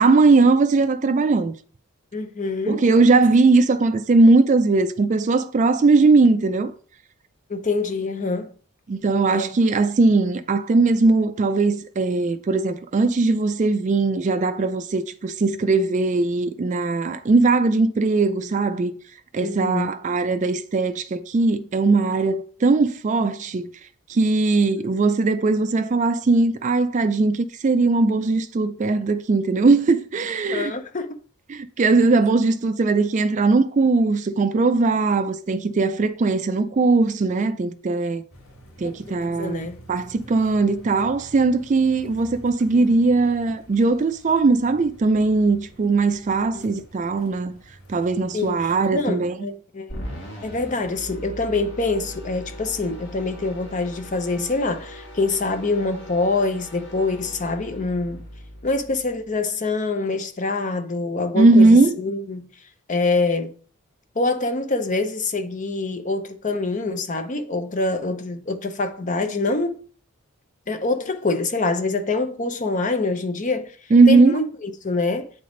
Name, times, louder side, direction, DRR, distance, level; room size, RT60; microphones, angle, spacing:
voice 1, 0.0-1.5 2.7-6.7 8.9-18.9 19.3-23.7 24.1-30.7 31.5-38.2 38.8-47.6 47.9-49.4 61.3-62.0 73.9-74.3, right 3 dB, 35° right, 0.3 m, -19 dB
voice 2, 2.1-2.8 7.5-8.5 9.3-9.5 19.4-19.9 30.5-31.2 38.8-39.8 42.8-43.0 46.5-46.7 48.3-50.1 50.4-58.2 58.6-62.5 62.9-63.5 64.2-69.8 70.7-73.8 74.1-75.3, left 3 dB, 35° left, 0.6 m, -25 dB
sound 1, 38.3-49.1, right 1 dB, 85° left, 1.4 m, -48 dB
sound 2, 49.9-59.3, equal, 55° left, 1.7 m, -39 dB
8.4 x 3.4 x 3.8 m
head